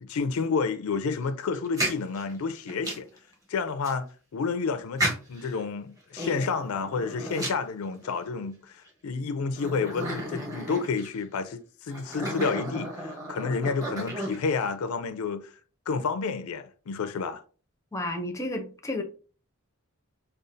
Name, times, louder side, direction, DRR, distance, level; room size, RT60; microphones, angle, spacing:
voice 1, 0.0-3.1 3.5-4.1 4.3-15.5 15.9-17.4, left 5 dB, 75° left, 0.4 m, -30 dB
sound 1, 1.5-3.2 3.8-3.9 5.0-5.5 6.1-8.2 8.9-9.0 9.6-11.2 11.9-14.6, right 1 dB, 15° right, 1.0 m, -33 dB
voice 2, 17.9-19.0, left 1 dB, 15° left, 0.5 m, -32 dB
4.9 x 2.3 x 2.6 m
head